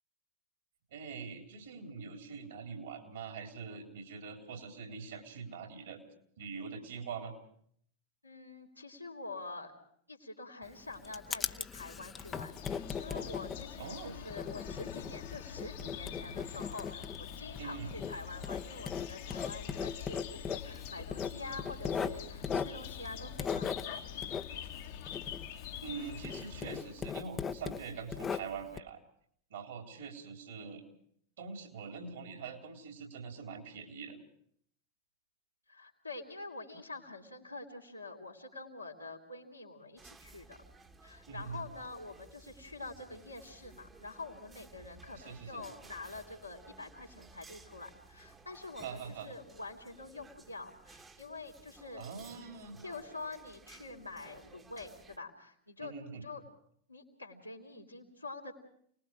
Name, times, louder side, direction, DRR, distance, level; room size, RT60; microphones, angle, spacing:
voice 1, 0.9-6.0 6.4-7.3 13.8-14.2 17.6-17.9 25.8-29.0 29.5-30.8 31.4-34.2 41.3-41.7 45.1-45.6 48.8-49.3 52.0-52.8 55.8-56.2, right 5 dB, 65° right, 3 dB, 3.6 m, -44 dB
voice 2, 8.2-9.7 10.1-24.4 35.7-40.6 41.0-52.5 52.8-56.4 56.9-58.6, left 3 dB, 90° left, -1 dB, 3.2 m, -46 dB
Writing, 10.6-26.0 26.2-28.8, left 6 dB, 20° left, 0.9 m, -39 dB
sound 1, 12.2-27.1, left 9 dB, 55° left, 1.5 m, -45 dB
sound 2, 40.0-55.2, right 3 dB, 15° right, 1.4 m, -57 dB
29.0 x 20.0 x 4.8 m, 0.65 s
figure-of-eight pair, 90°, 0 cm